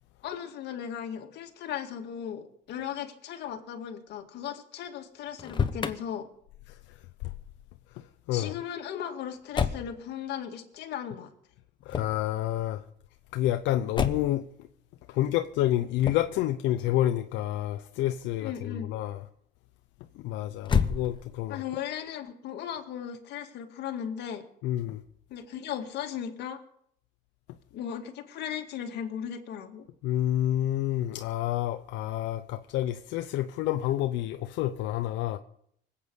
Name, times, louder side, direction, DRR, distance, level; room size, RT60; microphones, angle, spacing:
voice 1, 0.2-6.3 8.3-11.3 18.4-18.9 21.5-24.5 25.3-26.6 27.7-29.9, left 9 dB, 65° left, 2.0 m, -37 dB
Motor vehicle (road), 5.3-6.0 9.5-9.9 11.9-12.3 13.9-14.4 16.0-16.4 20.6-21.5, left 6 dB, 25° left, 1.0 m, -28 dB
voice 2, 11.9-12.8 13.3-14.4 15.1-19.2 20.2-21.6 24.6-25.0 30.0-35.4, left 13 dB, 90° left, 0.8 m, -28 dB
25.5 x 8.6 x 5.4 m
cardioid pair, 150°, 19 cm